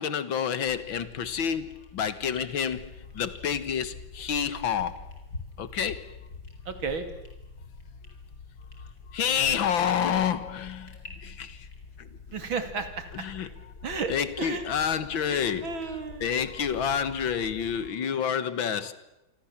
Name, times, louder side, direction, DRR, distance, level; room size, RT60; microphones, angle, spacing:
voice 1, 0.0-5.0 5.6-6.1 9.1-11.7 12.0-12.1 13.1-13.5 14.1-15.8 16.2-18.9, left 8 dB, 80° left, 14 dB, 2.2 m, -29 dB
sound 1, 0.7-17.9, left 3 dB, 55° left, 5.0 m, -46 dB
voice 2, 6.7-7.1 12.3-13.1 13.8-14.1 14.4-14.6 15.3-16.4, right 5 dB, 90° right, 8 dB, 3.4 m, -33 dB
27.5 x 25.0 x 7.4 m, 0.97 s
omnidirectional pair, 2.1 m